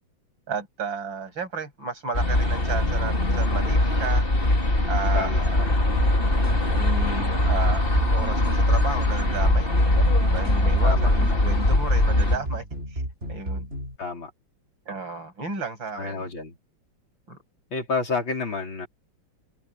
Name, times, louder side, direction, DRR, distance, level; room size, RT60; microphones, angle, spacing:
voice 1, 0.5-4.3 4.9-5.6 6.8-7.8 8.1-12.6 13.3-13.7 14.9-16.3 17.3-17.4, right 4 dB, 65° right, 8.0 m, -33 dB
sound 1, 2.1-12.4, left 1 dB, 25° left, 3.2 m, -21 dB
voice 2, 5.1-5.8 10.8-11.5 14.0-14.3 15.9-16.6 17.7-18.9, left 4 dB, 65° left, 5.0 m, -30 dB
sound 2, 5.9-14.0, right 1 dB, 30° right, 6.5 m, -33 dB
omnidirectional pair, 2.3 m